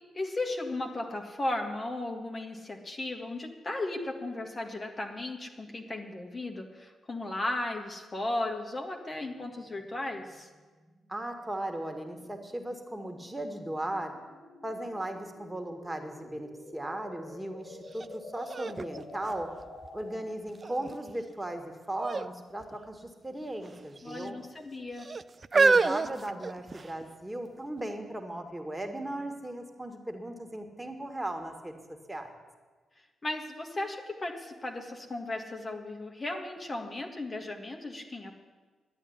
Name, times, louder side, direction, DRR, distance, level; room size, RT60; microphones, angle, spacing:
voice 1, 0.1-10.5 24.0-25.1 33.2-38.3, left 2 dB, 35° left, 2 dB, 1.7 m, -35 dB
sound 1, 9.1-20.4, left 2 dB, 50° left, 3.6 m, -50 dB
voice 2, 11.1-14.1 14.6-19.5 19.9-24.4 25.5-31.7 32.1-32.3, right 1 dB, 15° right, 4 dB, 2.1 m, -37 dB
sound 2, 18.0-18.1 18.5-20.0 20.6-21.1 22.0-22.3 22.6-22.8 23.6-24.3 25.0-27.0 27.8-27.9, right 4 dB, 40° right, 0.5 m, -28 dB
11.5 x 8.5 x 9.7 m, 1.4 s
hypercardioid pair, 40°, 0 cm